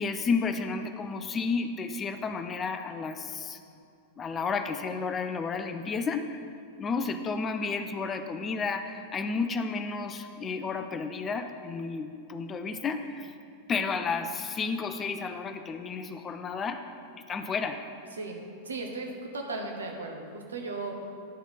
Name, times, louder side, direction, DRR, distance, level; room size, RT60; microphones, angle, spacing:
voice 1, 0.0-3.6 4.2-6.4 6.8-13.3 13.7-16.9 17.3-17.8, left 4 dB, 25° left, 8 dB, 0.4 m, -32 dB
voice 2, 18.1-21.1, right 3 dB, 70° right, 2 dB, 0.9 m, -36 dB
10.5 x 4.0 x 4.5 m, 2.3 s
figure-of-eight pair, 90°, 0 cm